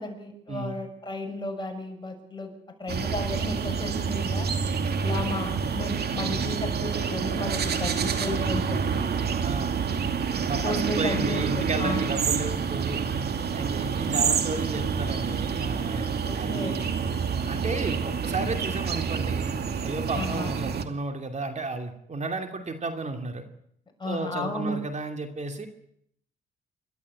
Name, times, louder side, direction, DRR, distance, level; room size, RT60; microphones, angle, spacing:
voice 1, 0.0-2.5 2.8-4.5 5.0-9.0 10.6-12.1 16.2-16.7 20.1-20.5 24.0-24.8, left 2 dB, 25° left, 3 dB, 6.5 m, -33 dB
sound 1, 2.9-20.8, right 6 dB, 55° right, 2.4 m, -28 dB
voice 2, 9.4-9.8 10.5-13.0 13.5-16.8 17.4-19.5 19.8-23.4 24.0-25.7, right 3 dB, 35° right, 6 dB, 2.7 m, -33 dB
29.0 x 12.5 x 8.6 m, 0.70 s
cardioid pair, 90°, 20 cm